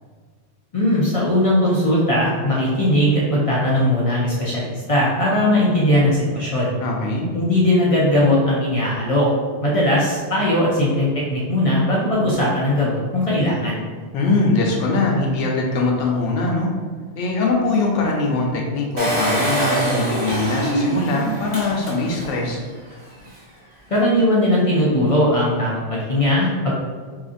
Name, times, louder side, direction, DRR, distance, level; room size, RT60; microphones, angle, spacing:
voice 1, 0.7-6.8 7.3-9.3 9.6-13.8 23.9-26.7, left 1 dB, 55° left, -6 dB, 0.4 m, -19 dB
voice 2, 6.8-7.3 14.1-16.7 17.2-22.6, left 3 dB, 85° left, -1 dB, 0.9 m, -21 dB
Engine, 19.0-22.4 22.9-23.0 23.2-23.3, right 2 dB, 40° right, 0.8 m, -24 dB
2.8 x 2.5 x 2.5 m, 1.5 s
omnidirectional pair, 1.2 m